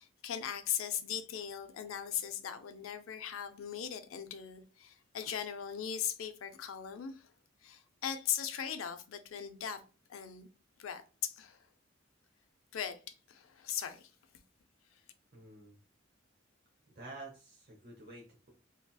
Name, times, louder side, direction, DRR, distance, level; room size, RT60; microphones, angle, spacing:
voice 1, 0.0-7.3 7.6-9.8 10.1-10.5 10.8-11.6 12.7-14.1, left 9 dB, 85° left, 0.4 m, -39 dB
voice 2, 15.3-15.8 17.0-18.5, right 2 dB, 50° right, 0.8 m, -50 dB
2.8 x 2.7 x 2.2 m
head